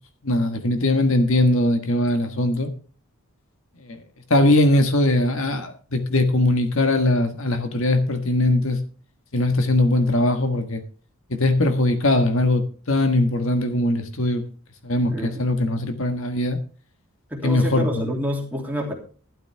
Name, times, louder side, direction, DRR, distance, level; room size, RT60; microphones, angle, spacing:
voice 1, 0.2-2.7 3.9-4.0 4.3-8.8 9.3-10.8 11.3-14.4 14.8-16.6 17.4-18.2, left 1 dB, 65° left, 7 dB, 1.5 m, -20 dB
voice 2, 15.1-15.4 17.3-19.0, equal, 10° right, 0 dB, 3.0 m, -28 dB
12.5 x 12.0 x 3.5 m, 0.39 s
head